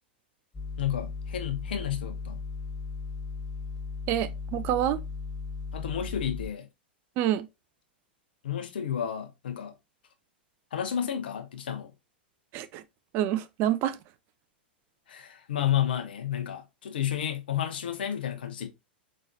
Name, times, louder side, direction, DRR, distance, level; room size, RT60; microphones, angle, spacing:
sound 1, 0.5-6.5, left 4 dB, 20° left, 1.1 m, -37 dB
voice 1, 0.8-2.4 5.7-6.7 8.4-9.7 10.7-11.9 15.1-18.7, left 10 dB, 65° left, 1.0 m, -31 dB
voice 2, 4.1-5.0 7.2-7.5 12.5-12.8 13.1-14.0, right 12 dB, 40° right, 0.4 m, -27 dB
5.3 x 3.3 x 2.7 m
figure-of-eight pair, 95°, 6 cm